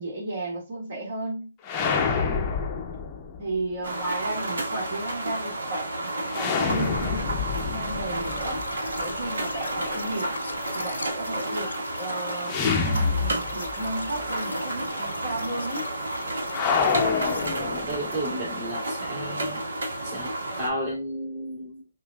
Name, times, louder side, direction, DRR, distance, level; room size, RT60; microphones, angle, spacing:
voice 1, 0.0-1.5 3.4-8.7 9.0-10.4 10.7-12.6 12.9-15.9, right 2 dB, 50° right, -2 dB, 2.0 m, -34 dB
sound 1, 1.6-3.6 6.3-9.3 12.5-13.9 14.1-14.2 16.5-18.3, left 5 dB, 20° left, 0.7 m, -27 dB
sound 2, 3.8-20.7, right 1 dB, 70° right, 1.3 m, -31 dB
sound 3, 8.1-17.5, left 3 dB, 80° left, 0.8 m, -41 dB
voice 2, 17.2-19.6 20.0-21.9, equal, 30° right, -6 dB, 2.0 m, -33 dB
5.5 x 2.5 x 2.3 m, 0.29 s
hypercardioid pair, 150°, 0 cm